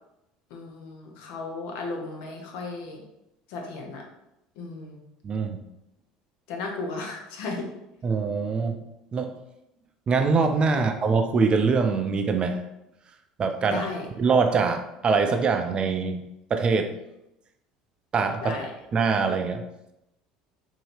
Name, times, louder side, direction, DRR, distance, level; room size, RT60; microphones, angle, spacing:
voice 1, 0.5-3.0 3.5-4.0 4.6-5.0 6.5-7.7 10.7-10.9 13.7-14.1 18.4-18.7, left 3 dB, 65° left, 1 dB, 0.8 m, -35 dB
voice 2, 5.2-5.6 8.0-8.8 9.1-9.3 10.1-12.6 13.4-13.8 14.2-16.2 16.5-16.9 18.1-18.6 18.9-19.6, right 4 dB, 35° right, 6 dB, 0.5 m, -23 dB
4.1 x 2.7 x 3.2 m, 0.87 s
hypercardioid pair, 75°, 3 cm